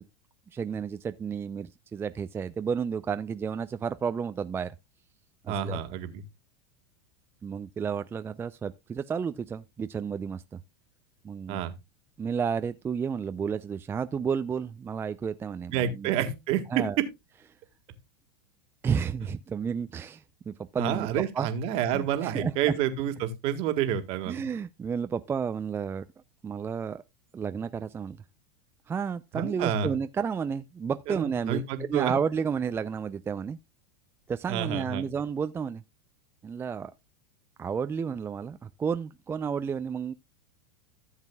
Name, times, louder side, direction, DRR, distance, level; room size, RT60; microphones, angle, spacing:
voice 1, 0.5-4.7 5.4-5.8 7.4-10.6 11.2-11.6 12.2-16.1 16.7-17.0 18.8-21.1 21.3-21.5 21.9-22.5 24.3-26.0 26.4-27.0 27.3-28.2 28.9-33.6 34.3-35.8 36.4-36.9 37.6-40.1, right 6 dB, 20° right, 0.4 m, -31 dB
voice 2, 5.5-6.2 11.5-11.7 15.7-16.8 20.8-24.4 29.3-29.9 31.1-32.1 34.5-35.0, right 9 dB, 50° right, 1.7 m, -29 dB
14.5 x 7.3 x 2.3 m
hypercardioid pair, 110°, 12 cm